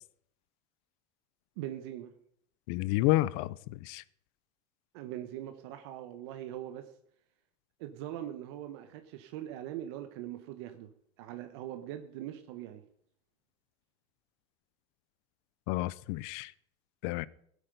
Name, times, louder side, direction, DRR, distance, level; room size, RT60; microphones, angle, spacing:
voice 1, 1.6-2.1 4.9-6.9 7.8-10.9 11.2-12.8, right 12 dB, 75° right, 1.2 m, -41 dB
voice 2, 2.7-3.5 3.9-4.0 15.7-16.5 17.0-17.3, left 18 dB, 65° left, 0.6 m, -29 dB
17.0 x 8.5 x 5.2 m
cardioid pair, 160°, 14 cm